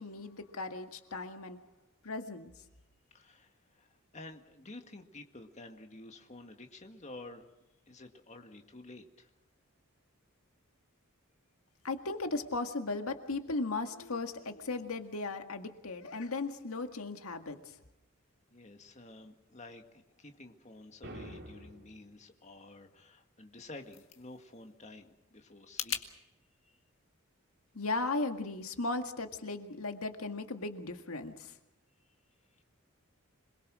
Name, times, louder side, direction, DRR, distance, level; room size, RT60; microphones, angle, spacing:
voice 1, 0.0-1.6 2.0-2.5 11.8-17.8 27.7-31.6, left 3 dB, 90° left, 6 dB, 1.9 m, -37 dB
voice 2, 3.1-7.5 7.9-9.3 18.5-26.0 26.6-26.8 32.5-32.6, left 2 dB, 35° left, 5 dB, 1.9 m, -51 dB
sound 1, 21.0-22.0, equal, 55° right, 4.0 m, -46 dB
sound 2, 23.4-26.1, left 9 dB, 65° left, 2.0 m, -42 dB
27.0 x 21.5 x 6.3 m, 0.91 s
head